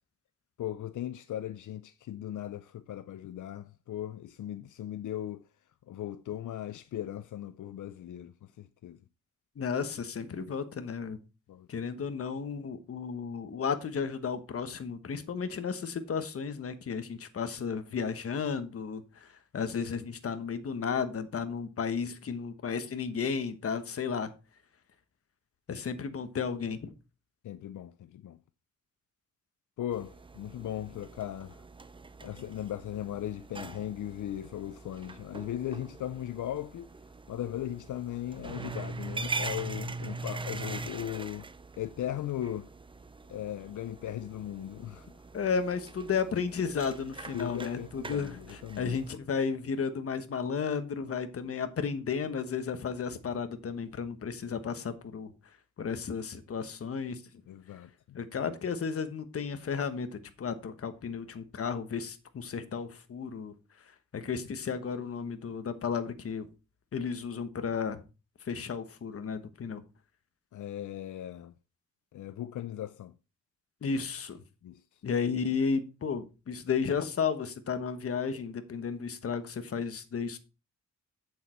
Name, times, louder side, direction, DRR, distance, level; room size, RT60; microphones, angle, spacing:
voice 1, 0.6-5.4 5.9-9.0 10.3-10.4 11.5-11.7 27.4-28.4 29.8-31.6 32.2-36.9 37.3-41.5 41.8-42.7 43.3-45.2 47.3-49.0 57.5-58.2 58.5-58.6 70.5-71.5 72.1-73.1 74.6-74.8, left 11 dB, 80° left, 0.5 m, -38 dB
voice 2, 9.6-11.2 11.7-19.3 19.5-24.3 25.7-26.9 45.3-55.3 55.8-57.2 58.1-63.5 64.1-66.5 66.9-68.0 68.5-69.8 73.8-74.4 75.0-80.4, left 6 dB, 50° left, 1.2 m, -33 dB
sound 1, 29.9-49.1, right 3 dB, 15° right, 0.5 m, -42 dB
8.4 x 7.1 x 4.4 m
wide cardioid pair, 160°, 30 cm